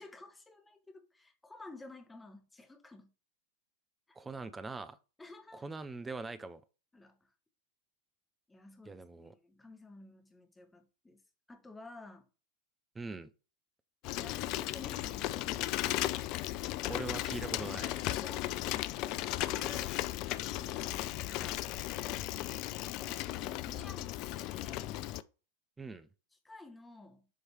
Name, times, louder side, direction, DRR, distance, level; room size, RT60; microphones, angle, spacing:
voice 1, 0.0-3.1 4.1-4.2 5.2-5.6 6.9-7.3 8.5-11.2 11.5-12.3 14.1-15.6 18.2-18.6 19.5-20.1 20.5-21.7 22.9-25.0 26.4-27.3, left 2 dB, 10° left, 1.2 m, -52 dB
voice 2, 4.2-5.0 5.5-6.6 8.9-9.3 12.9-13.3 16.8-17.9 25.8-26.1, right 3 dB, 10° right, 0.6 m, -42 dB
Bicycle, 14.0-25.2, left 15 dB, 40° left, 0.3 m, -36 dB
7.3 x 3.2 x 4.5 m
figure-of-eight pair, 90°, 0 cm